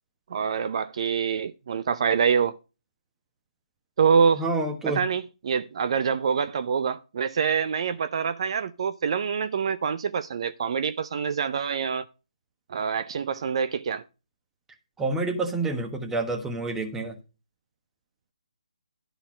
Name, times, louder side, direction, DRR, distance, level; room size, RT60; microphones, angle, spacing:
voice 1, 0.3-2.6 4.0-4.4 4.9-12.0 12.7-14.0, right 6 dB, 45° right, 0.5 m, -25 dB
voice 2, 4.4-5.0 15.0-17.2, right 2 dB, 5° right, 1.3 m, -28 dB
11.5 x 4.0 x 7.4 m
figure-of-eight pair, 150°, 4 cm